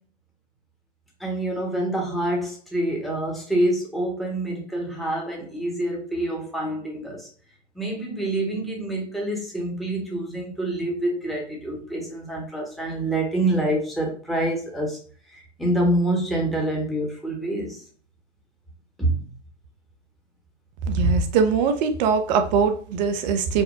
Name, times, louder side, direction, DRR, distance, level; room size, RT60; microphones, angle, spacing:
voice 1, 1.2-7.3 7.7-15.0 15.3-17.8 19.0-19.3, right 1 dB, ahead, -2 dB, 1.1 m, -26 dB
voice 2, 20.9-23.6, right 5 dB, 35° right, 7 dB, 0.7 m, -21 dB
5.3 x 2.2 x 3.8 m, 0.44 s
hypercardioid pair, 125°, 37 cm